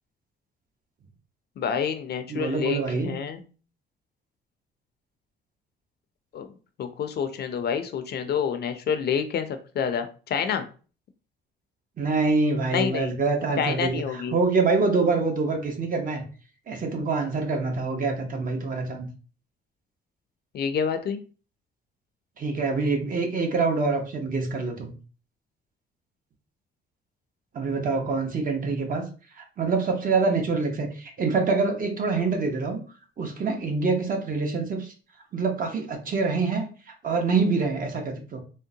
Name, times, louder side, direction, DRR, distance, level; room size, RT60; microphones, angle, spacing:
voice 1, 1.6-3.4 6.3-6.5 6.8-10.7 12.7-13.1 13.6-14.3 20.5-21.2, left 7 dB, 55° left, 9 dB, 0.5 m, -28 dB
voice 2, 2.3-3.1 12.0-16.3 16.7-19.1 22.4-24.9 27.5-29.0 29.4-32.8 33.2-34.9 35.3-36.7 37.0-38.4, right 4 dB, 45° right, 4 dB, 0.8 m, -25 dB
3.6 x 2.1 x 2.7 m, 0.37 s
cardioid pair, 90°, 20 cm